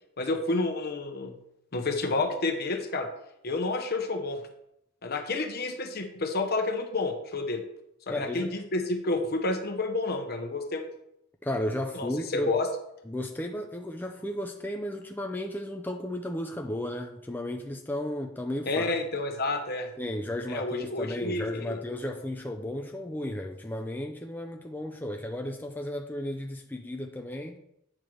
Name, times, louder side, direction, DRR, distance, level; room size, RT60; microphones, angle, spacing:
voice 1, 0.2-1.3 1.7-3.1 3.4-4.4 5.0-7.6 8.1-10.9 11.9-12.7 18.7-19.9 20.5-21.8, left 2 dB, 50° left, 6 dB, 1.0 m, -30 dB
voice 2, 8.1-8.5 11.4-12.5 13.1-18.9 20.0-27.6, left 1 dB, 10° left, 3 dB, 0.4 m, -34 dB
8.9 x 3.4 x 6.1 m, 0.78 s
head